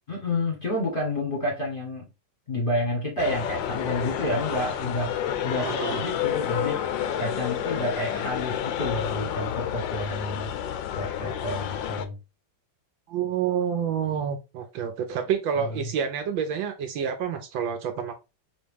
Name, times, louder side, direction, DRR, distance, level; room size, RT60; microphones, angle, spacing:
voice 1, 0.1-2.1 2.5-6.8 7.2-10.5 11.0-12.2, left 1 dB, 30° left, 1.1 m, -29 dB
sound 1, 3.2-12.1, left 9 dB, 75° left, 1.2 m, -30 dB
voice 2, 5.5-6.0 13.1-18.1, right 8 dB, 75° right, 1.2 m, -28 dB
4.1 x 3.1 x 3.3 m
omnidirectional pair, 2.3 m